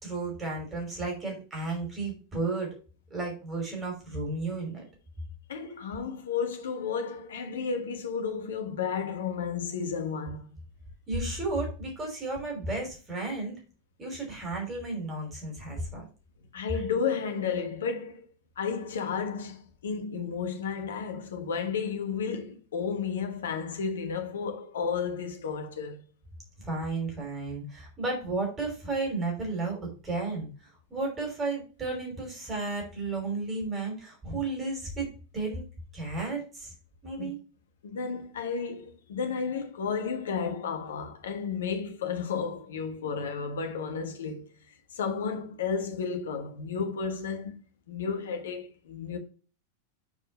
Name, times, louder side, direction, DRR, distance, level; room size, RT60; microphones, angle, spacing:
voice 1, 0.0-2.7 3.1-4.8 11.1-13.5 14.0-16.0 26.6-30.5 30.9-35.1 35.3-35.6 35.9-36.7 37.0-37.4, right 3 dB, 20° right, 3.4 m, -33 dB
voice 2, 5.5-10.5 16.5-18.3 18.6-26.0 37.2-37.3 37.8-47.5 47.9-49.2, left 6 dB, 65° left, 1.2 m, -32 dB
7.1 x 4.5 x 4.3 m
figure-of-eight pair, 90°, 0 cm